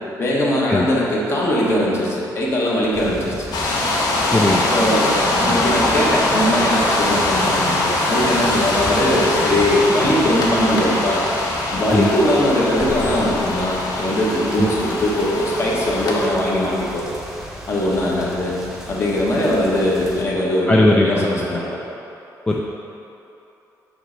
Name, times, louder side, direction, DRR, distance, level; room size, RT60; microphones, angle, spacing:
voice 1, 0.2-3.3 4.7-11.2 11.7-17.1 17.7-18.5 18.9-21.8, left 1 dB, 40° left, -4 dB, 1.1 m, -20 dB
sound 1, 2.9-20.2, equal, 5° right, 0.8 m, -35 dB
sound 2, 3.5-16.3, left 2 dB, 70° left, 1.0 m, -22 dB
voice 2, 20.7-21.4 22.5-22.7, left 1 dB, 15° left, -2 dB, 0.3 m, -18 dB
7.7 x 3.2 x 5.1 m, 2.9 s
cardioid pair, 165°, 7 cm